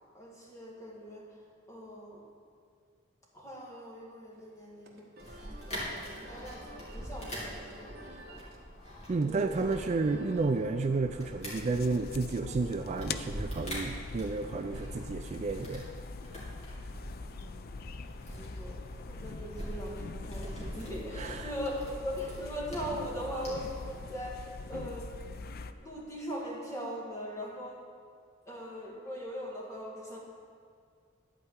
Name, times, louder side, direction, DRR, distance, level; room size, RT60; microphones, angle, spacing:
voice 1, 0.1-1.4 1.7-2.2 3.3-8.5 9.3-9.6 18.3-25.1 25.7-27.8 28.5-30.2, equal, 15° left, -3 dB, 1.9 m, -40 dB
sound 1, 4.3-10.5, right 1 dB, 50° right, 1.3 m, -52 dB
sound 2, 5.2-23.9, equal, 35° left, 2.7 m, -44 dB
voice 2, 9.1-15.9 21.2-21.5, right 3 dB, 35° right, 6 dB, 0.4 m, -31 dB
sound 3, 11.5-25.7, left 4 dB, 50° left, 0.4 m, -43 dB
11.5 x 4.7 x 8.1 m, 2.2 s
head